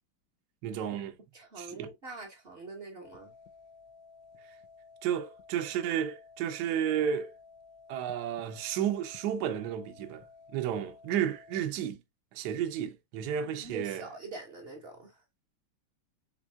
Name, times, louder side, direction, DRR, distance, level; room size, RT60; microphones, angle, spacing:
voice 1, 0.6-1.1 1.6-1.9 5.0-7.3 7.9-10.2 10.5-12.0 12.3-14.1, right 9 dB, 70° right, 1.0 m, -32 dB
voice 2, 1.3-3.3 13.4-15.2, right 3 dB, 40° right, 0.9 m, -44 dB
sound 1, 3.0-11.6, left 5 dB, 75° left, 1.3 m, -55 dB
4.5 x 3.6 x 2.2 m
omnidirectional pair, 2.3 m